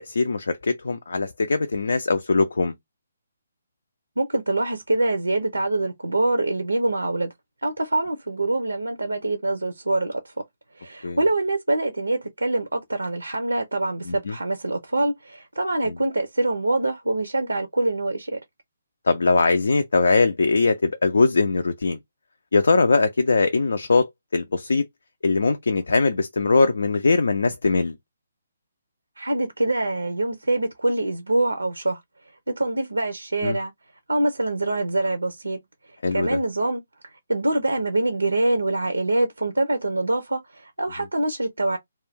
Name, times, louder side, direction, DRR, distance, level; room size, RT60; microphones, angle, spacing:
voice 1, 0.0-2.7 11.0-11.2 14.1-14.3 19.1-22.0 22.5-24.9 25.2-27.9 33.4-33.6 36.0-36.4, left 3 dB, 70° left, 0.4 m, -21 dB
voice 2, 4.2-7.3 7.6-10.3 10.8-18.4 29.2-32.0 32.6-33.7 34.1-35.6 36.1-36.8 37.3-41.8, right 2 dB, 85° right, 0.5 m, -24 dB
2.5 x 2.2 x 3.3 m
figure-of-eight pair, 140°, 0 cm